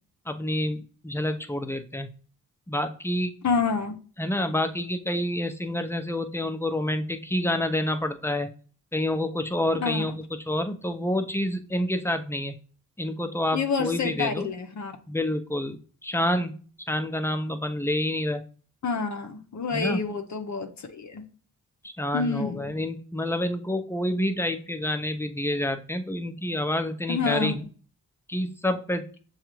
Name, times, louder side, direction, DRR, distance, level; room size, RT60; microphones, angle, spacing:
voice 1, 0.3-2.1 2.7-3.3 4.2-8.5 8.9-10.1 10.5-12.5 13.0-14.5 15.1-15.8 16.0-16.5 16.9-18.4 19.7-20.0 21.8-27.7 28.3-29.1, left 1 dB, 5° left, 0.6 m, -28 dB
voice 2, 3.4-4.0 9.8-10.1 13.5-15.0 18.8-21.2 22.1-22.6 27.1-27.6, left 5 dB, 50° left, 0.7 m, -28 dB
6.6 x 2.4 x 3.0 m
cardioid pair, 50°, 36 cm